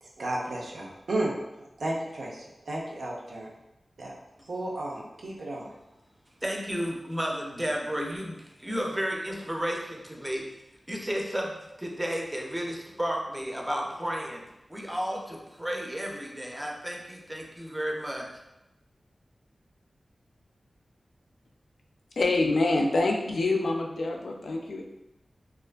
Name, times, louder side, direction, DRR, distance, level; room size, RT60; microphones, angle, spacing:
voice 1, 0.0-3.5 4.0-4.1 4.5-5.7, right 1 dB, 85° right, -2 dB, 0.5 m, -33 dB
voice 2, 6.4-10.5 10.9-14.4 14.7-18.3, equal, 15° right, 0 dB, 0.4 m, -32 dB
voice 3, 22.2-24.8, left 2 dB, 85° left, 1 dB, 0.3 m, -26 dB
2.5 x 2.3 x 2.2 m, 0.93 s
wide cardioid pair, 90°, 0 cm